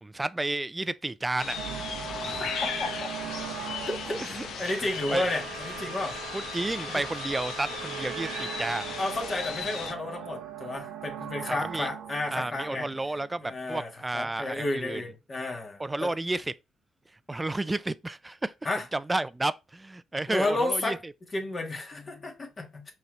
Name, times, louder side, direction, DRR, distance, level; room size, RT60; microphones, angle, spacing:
voice 1, 0.0-1.6 2.2-2.5 4.2-4.5 5.1-5.3 6.3-9.0 11.5-11.9 12.3-15.0 15.8-16.5 17.3-18.5 18.9-21.1, right 2 dB, 20° right, 0.4 m, -32 dB
sound 1, 1.4-9.9, left 6 dB, 70° left, 0.7 m, -36 dB
sound 2, 1.6-13.7, right 9 dB, 85° right, 0.7 m, -40 dB
voice 2, 2.6-3.1 4.6-6.2 6.9-7.0 9.0-12.9 13.4-16.1 18.6-18.8 20.3-21.0 21.3-22.9, left 2 dB, 40° left, 1.6 m, -32 dB
5.2 x 3.2 x 2.5 m
supercardioid pair, 60°, 0 cm